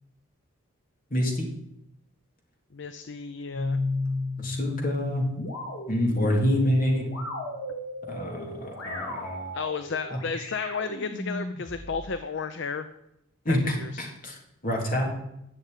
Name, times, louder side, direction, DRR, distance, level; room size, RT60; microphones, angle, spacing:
voice 1, 1.1-1.5 4.4-5.3 5.9-7.1 8.1-9.6 10.1-10.2 13.4-14.4 14.6-15.1, left 1 dB, 40° left, 0 dB, 3.1 m, -27 dB
voice 2, 2.7-3.8 9.5-12.9 13.5-14.1, left 5 dB, 55° left, 10 dB, 0.6 m, -33 dB
sound 1, 3.5-12.1, left 2 dB, 75° left, 3.3 m, -34 dB
11.5 x 7.0 x 9.2 m, 0.82 s
head